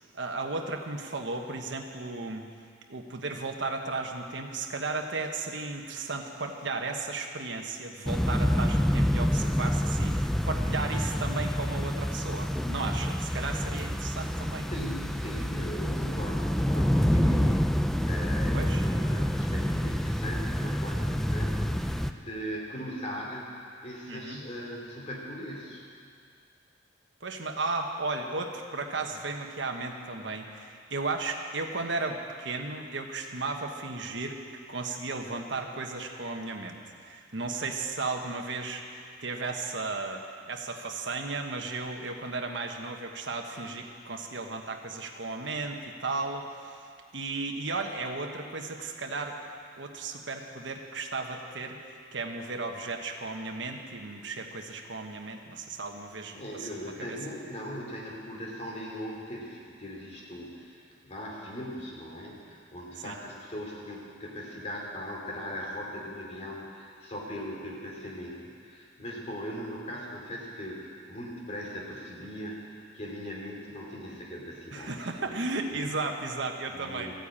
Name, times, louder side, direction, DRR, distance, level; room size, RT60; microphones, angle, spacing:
voice 1, 0.1-2.4 2.9-14.7 18.5-18.8 24.1-24.4 27.2-34.4 34.7-46.9 47.1-49.4 49.8-51.8 52.1-57.2 63.0-63.2 74.7-77.1, right 3 dB, 70° right, 3 dB, 1.3 m, -35 dB
sound 1, 8.1-22.1, equal, ahead, 0.3 m, -27 dB
voice 2, 14.7-23.5 23.8-25.8 56.3-75.3 76.7-77.1, equal, 35° left, -2 dB, 2.8 m, -39 dB
14.0 x 9.2 x 8.9 m, 2.3 s
head